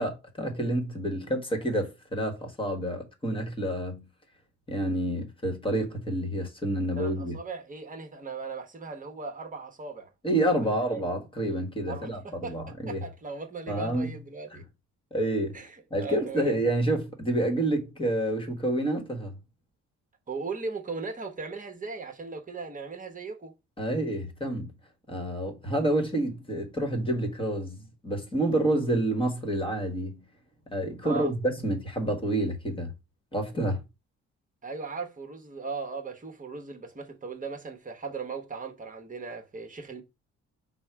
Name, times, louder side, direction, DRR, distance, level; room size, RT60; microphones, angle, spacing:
voice 1, 0.0-4.0 4.7-7.4 10.2-13.0 13.7-14.1 15.1-15.6 15.9-19.3 23.8-24.7 25.1-30.2 30.7-32.9 33.3-33.8, right 1 dB, 15° left, 1.3 m, -28 dB
voice 2, 7.0-10.1 10.6-11.0 11.9-12.6 12.9-14.6 15.5-16.6 20.3-23.5 31.0-31.3 34.6-40.0, right 4 dB, 25° right, 1.1 m, -38 dB
5.4 x 2.1 x 4.6 m
cardioid pair, 90°, 30 cm